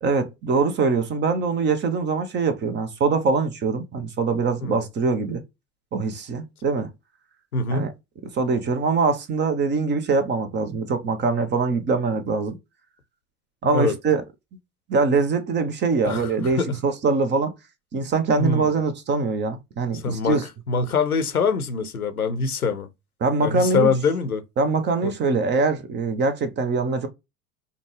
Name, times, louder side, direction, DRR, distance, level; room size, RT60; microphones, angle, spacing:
voice 1, 0.0-5.4 5.9-6.9 7.7-7.9 8.3-12.6 13.6-14.2 14.9-17.5 17.9-20.4 23.2-23.9 24.6-27.1, right 4 dB, 25° right, 0.8 m, -23 dB
voice 2, 7.5-7.9 13.7-13.9 16.0-16.8 18.4-18.7 19.9-22.9 23.4-24.4 25.0-25.1, left 4 dB, 85° left, 0.7 m, -24 dB
5.2 x 2.3 x 3.0 m
figure-of-eight pair, 80°, 43 cm